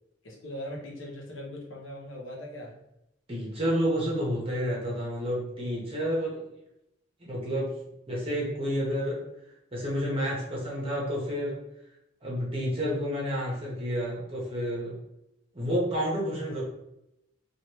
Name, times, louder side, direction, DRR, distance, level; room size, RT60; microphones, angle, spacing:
voice 1, 0.2-2.7, left 1 dB, 80° left, -2 dB, 0.9 m, -40 dB
voice 2, 3.3-6.4 7.2-7.7 8.1-9.2 9.7-11.6 12.2-14.9 15.5-16.6, equal, 30° right, -5 dB, 1.0 m, -30 dB
3.1 x 2.5 x 3.0 m, 0.85 s
head